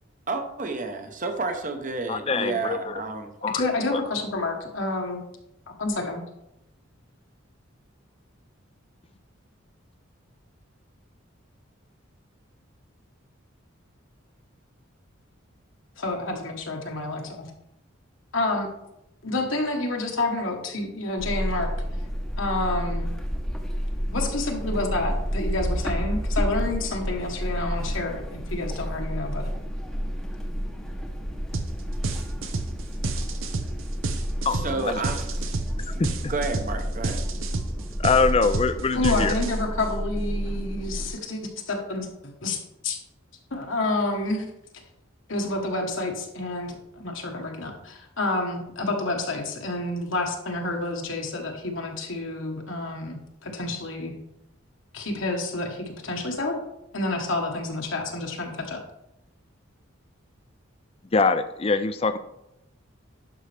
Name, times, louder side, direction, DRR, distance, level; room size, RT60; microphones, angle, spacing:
voice 1, 0.3-3.3 34.5-35.2 36.0-37.2, right 3 dB, 40° right, 6 dB, 0.9 m, -30 dB
voice 2, 2.1-3.0 3.4-4.0 34.5-35.0 36.0-36.3 38.0-39.3 61.1-62.2, left 4 dB, 30° left, 11 dB, 0.4 m, -24 dB
voice 3, 3.5-5.2 5.7-6.2 16.0-17.5 18.3-18.7 19.2-21.7 22.4-23.1 24.1-29.5 38.9-43.0 43.5-44.4 45.3-54.2 54.9-56.6 56.9-58.8, left 2 dB, 70° left, 1 dB, 1.4 m, -29 dB
sound 1, 21.2-41.1, equal, ahead, 0.9 m, -30 dB
sound 2, 31.5-31.7 32.0-39.8, right 3 dB, 75° right, 0.8 m, -30 dB
11.0 x 5.6 x 3.4 m, 0.85 s
head